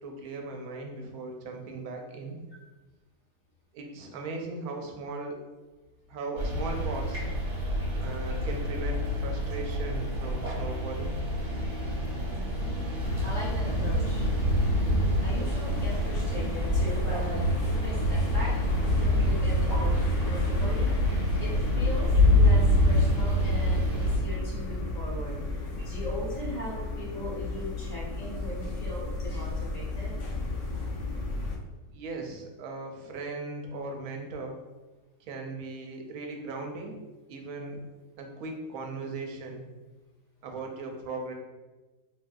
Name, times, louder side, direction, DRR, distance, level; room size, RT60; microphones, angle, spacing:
voice 1, 0.0-2.4 3.7-5.4 6.1-7.2 8.0-11.1 31.9-34.6 35.2-37.0 37.3-37.8 38.2-39.6 40.4-41.3, right 3 dB, 70° right, 2 dB, 0.9 m, -38 dB
sound 1, 6.4-24.2, equal, 35° right, 0.9 m, -26 dB
voice 2, 12.3-12.8 13.2-14.2 15.2-17.4 17.8-18.5 19.0-20.9 21.4-30.1, equal, 30° left, -6 dB, 0.8 m, -39 dB
sound 2, 13.0-31.6, left 2 dB, 65° left, 0.8 m, -34 dB
3.5 x 2.6 x 2.3 m, 1.2 s
omnidirectional pair, 1.8 m